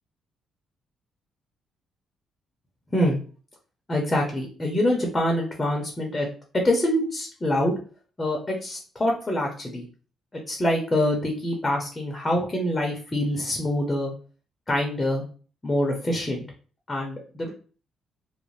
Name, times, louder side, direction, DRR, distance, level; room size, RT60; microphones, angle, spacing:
voice 1, 3.9-6.3 6.5-7.7 8.2-9.9 10.5-14.1 14.7-15.2 15.6-16.5 16.9-17.5, left 1 dB, 20° left, 1 dB, 0.7 m, -25 dB
2.5 x 2.1 x 3.1 m, 0.40 s
cardioid pair, 90°, 0 cm